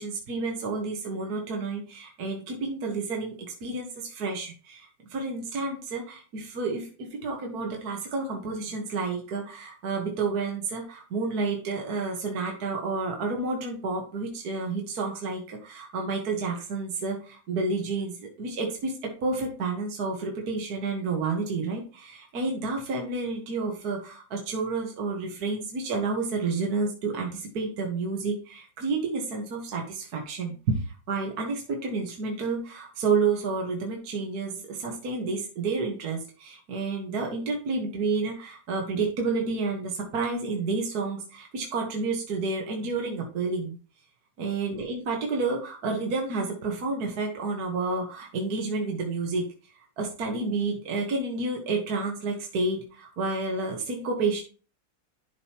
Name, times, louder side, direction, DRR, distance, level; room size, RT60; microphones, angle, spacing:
voice 1, 0.0-18.9 19.2-43.8 44.4-54.4, right 3 dB, 55° right, 1 dB, 1.8 m, -30 dB
11.5 x 5.2 x 2.9 m, 0.38 s
omnidirectional pair, 2.0 m